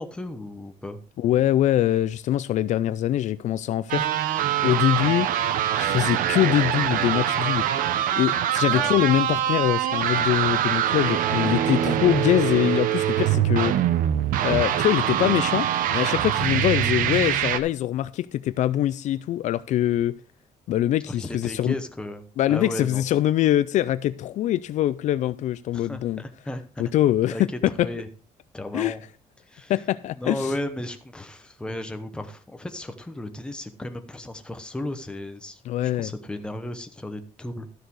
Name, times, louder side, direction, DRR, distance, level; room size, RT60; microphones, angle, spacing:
voice 1, 0.0-1.0 8.6-9.0 21.1-22.2 22.5-23.0 25.7-26.9 27.3-27.4 27.8-28.1 28.5-29.0 29.5-29.7 30.1-37.7, left 1 dB, 5° left, 0.9 m, -34 dB
voice 2, 1.2-4.1 4.6-5.3 5.8-7.6 8.1-13.7 14.4-15.7 15.9-20.2 20.7-21.8 22.4-26.2 26.8-27.9 28.7-28.9 29.7-30.5 35.6-36.1, left 13 dB, 60° left, 0.4 m, -23 dB
sound 1, 3.9-17.6, right 10 dB, 85° right, 0.9 m, -24 dB
12.5 x 6.5 x 4.7 m
cardioid pair, 175°, 14 cm